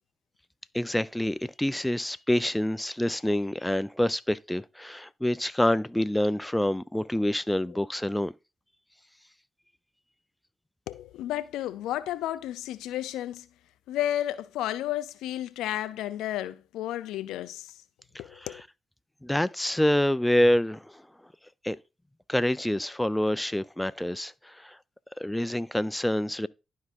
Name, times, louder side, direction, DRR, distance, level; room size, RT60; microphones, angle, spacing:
voice 1, 0.7-8.3 18.4-18.5 19.2-21.1 21.6-21.8 22.3-24.8 25.2-26.5, left 1 dB, 10° left, 0.4 m, -27 dB
voice 2, 10.9-13.5 13.9-17.7 18.1-18.6, left 13 dB, 80° left, 0.3 m, -32 dB
12.0 x 4.6 x 2.4 m
hypercardioid pair, 40°, 0 cm